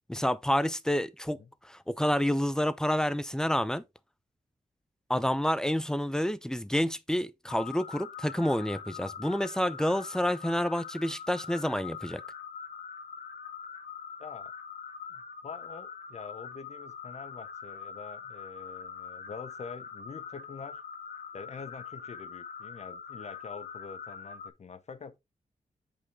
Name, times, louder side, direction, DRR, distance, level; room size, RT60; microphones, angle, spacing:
voice 1, 0.1-1.4 1.6-3.8 5.1-12.2, equal, 5° left, 0.5 m, -29 dB
sound 1, 7.5-24.5, left 6 dB, 75° left, 1.4 m, -43 dB
voice 2, 14.2-14.5 15.1-20.8 21.3-25.1, left 5 dB, 55° left, 0.8 m, -45 dB
8.5 x 5.1 x 3.5 m
wide cardioid pair, 125°, 14 cm